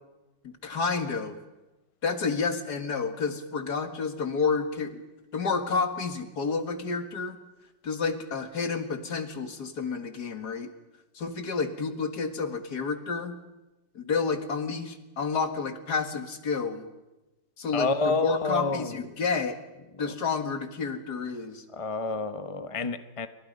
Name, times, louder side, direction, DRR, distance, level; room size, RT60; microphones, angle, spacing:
voice 1, 0.4-1.4 2.0-5.0 5.3-7.4 7.8-10.7 11.1-13.3 13.9-16.8 17.6-19.6 20.0-21.6, left 5 dB, 55° left, 7 dB, 2.3 m, -30 dB
voice 2, 17.7-19.0 20.0-20.1 21.7-23.3, left 3 dB, 25° left, 9 dB, 0.8 m, -29 dB
28.5 x 24.5 x 5.4 m, 1.1 s
omnidirectional pair, 2.1 m